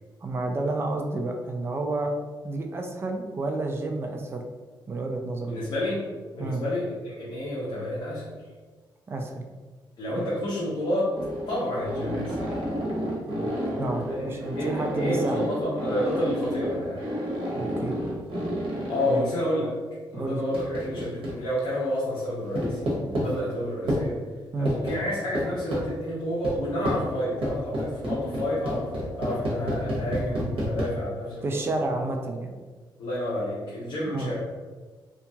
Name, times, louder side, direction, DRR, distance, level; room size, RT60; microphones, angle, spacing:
voice 1, 0.2-2.1 2.4-4.4 4.9-5.5 6.4-6.6 9.1-9.4 10.2-10.3 13.6-15.5 17.6-18.0 19.1-19.3 20.1-20.4 24.5-24.8 31.4-32.5 34.0-34.3, right 2 dB, 25° right, 3 dB, 0.3 m, -30 dB
voice 2, 5.5-6.0 6.3-8.4 10.0-11.1 11.5-12.6 14.1-17.1 18.9-19.7 20.1-24.2 24.6-31.7 33.0-34.4, left 1 dB, 55° left, -8 dB, 0.7 m, -30 dB
sound 1, 11.1-19.2 20.5-21.6 22.5-23.3 23.9-24.0 24.6-25.0 25.3-25.9 26.4-26.6 26.8-27.0 27.4-30.8, equal, 90° right, 0.8 m, -30 dB
2.8 x 2.3 x 2.6 m, 1.4 s
wide cardioid pair, 150°, 9 cm